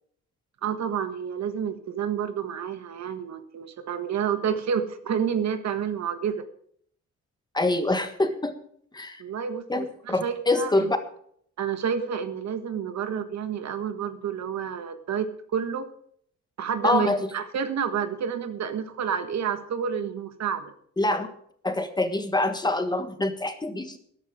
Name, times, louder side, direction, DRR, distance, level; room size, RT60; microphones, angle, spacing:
voice 1, 0.6-6.5 9.2-10.9 11.6-15.9 16.6-20.7, right 7 dB, 65° right, 10 dB, 1.5 m, -29 dB
voice 2, 7.5-8.5 8.9-9.2 9.7-11.0 16.8-17.2 21.0-21.3 21.6-24.0, left 2 dB, 15° left, 8 dB, 1.5 m, -25 dB
13.5 x 11.5 x 4.9 m, 0.64 s
cardioid pair, 140°, 30 cm